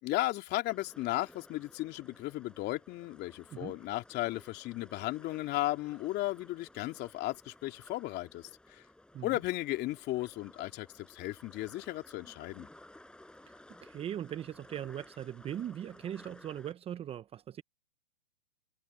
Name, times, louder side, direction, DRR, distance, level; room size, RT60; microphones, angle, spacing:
voice 1, 0.0-8.8 9.2-12.7, left 17 dB, 30° left, 3.1 m, -35 dB
sound 1, 0.6-16.7, left 1 dB, 5° left, 6.1 m, -57 dB
voice 2, 13.5-17.6, right 10 dB, 20° right, 1.0 m, -40 dB
hypercardioid pair, 125°, 33 cm